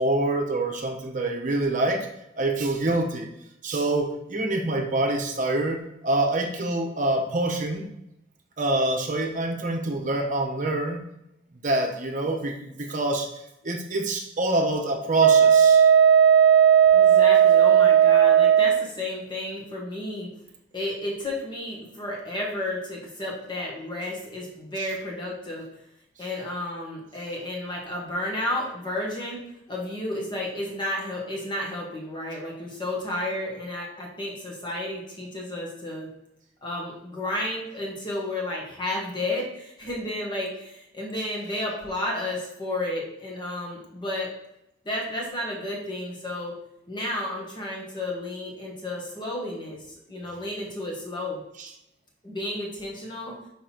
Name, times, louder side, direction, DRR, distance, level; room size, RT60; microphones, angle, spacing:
voice 1, 0.0-2.1 2.4-3.3 3.6-7.8 8.6-11.0 11.6-13.3 13.6-15.9 51.6-51.7, right 2 dB, 45° right, 2 dB, 1.0 m, -26 dB
Wind instrument woodwind instrument, 15.2-18.9, right 8 dB, 85° right, 0.4 m, -16 dB
voice 2, 16.9-20.3 20.7-25.7 26.2-29.4 29.7-36.1 36.6-44.3 44.8-46.5 46.9-49.8 50.1-51.4 52.2-53.3, left 1 dB, 25° left, -3 dB, 1.6 m, -32 dB
5.7 x 4.0 x 4.5 m, 0.83 s
head